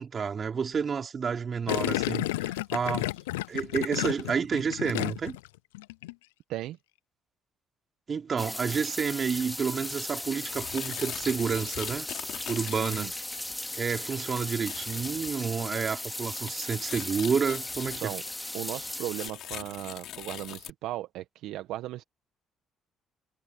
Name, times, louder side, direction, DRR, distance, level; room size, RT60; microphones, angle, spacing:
voice 1, 0.0-3.1 3.5-5.4 8.1-12.1 12.5-13.1 13.7-18.1, right 6 dB, 45° right, 5.5 m, -30 dB
Gurgling, 1.7-5.5 5.7-6.1, left 19 dB, 90° left, 0.6 m, -31 dB
sound 1, 8.4-19.3, left 1 dB, 10° left, 2.8 m, -37 dB
sound 2, 9.3-9.4 9.8-13.6 14.0-15.3 15.6-15.7 16.0-18.3 18.8-20.7, left 12 dB, 65° left, 4.8 m, -42 dB
voice 2, 12.8-13.1 17.8-18.2 18.5-22.0, right 15 dB, 75° right, 1.5 m, -36 dB
hypercardioid pair, 50°, 0 cm